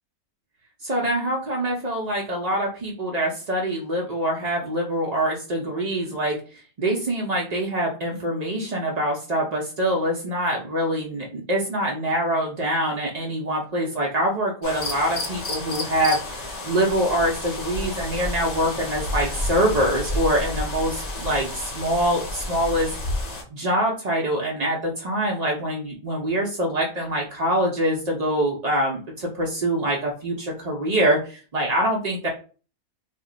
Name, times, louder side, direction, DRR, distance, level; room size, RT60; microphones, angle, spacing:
voice 1, 0.8-23.0 23.5-32.3, right 1 dB, 70° right, -2 dB, 0.3 m, -24 dB
sound 1, 14.6-23.4, left 2 dB, 50° left, 0.5 m, -31 dB
2.4 x 2.1 x 3.7 m, 0.36 s
omnidirectional pair, 1.5 m